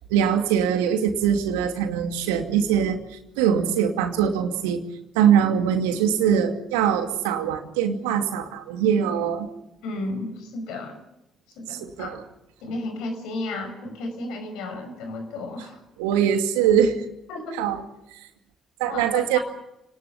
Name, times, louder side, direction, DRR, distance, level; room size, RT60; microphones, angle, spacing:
voice 1, 0.1-4.8 5.1-9.5 11.7-12.2 15.6-15.7 16.0-17.1 17.5-17.8 18.1-18.2 18.8-19.4, right 8 dB, 80° right, 6 dB, 2.4 m, -22 dB
voice 2, 9.8-10.9 11.6-12.2 12.6-15.8 17.3-17.6 18.9-19.4, left 2 dB, 75° left, 7 dB, 5.7 m, -33 dB
29.0 x 19.0 x 7.0 m, 0.87 s
hypercardioid pair, 45°, 0 cm